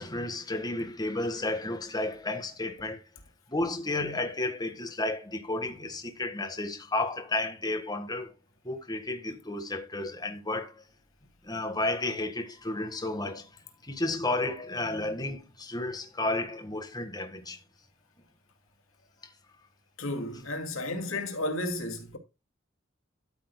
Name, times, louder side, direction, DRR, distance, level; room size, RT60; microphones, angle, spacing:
voice 1, 0.0-3.0 3.5-8.3 8.6-10.8 11.4-13.5 13.8-17.6 19.2-19.3, left 2 dB, 20° left, 1.5 m, -32 dB
voice 2, 20.0-22.2, left 1 dB, 85° left, 2.4 m, -33 dB
12.5 x 9.1 x 2.2 m
head